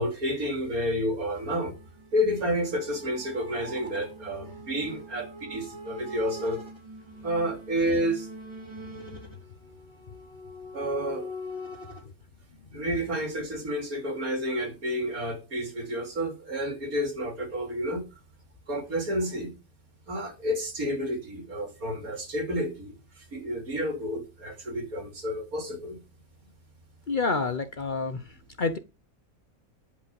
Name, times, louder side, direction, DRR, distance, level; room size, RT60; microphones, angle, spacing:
voice 1, 0.0-1.7 2.1-6.6 7.2-8.3 10.7-11.3 12.7-18.0 18.7-19.5 20.1-26.0, equal, 85° right, 3.5 m, -30 dB
sound 1, 1.4-12.0, equal, 20° right, 3.5 m, -43 dB
voice 2, 27.1-28.2 28.6-28.8, left 4 dB, 40° left, 0.8 m, -28 dB
11.0 x 5.2 x 7.0 m
omnidirectional pair, 1.5 m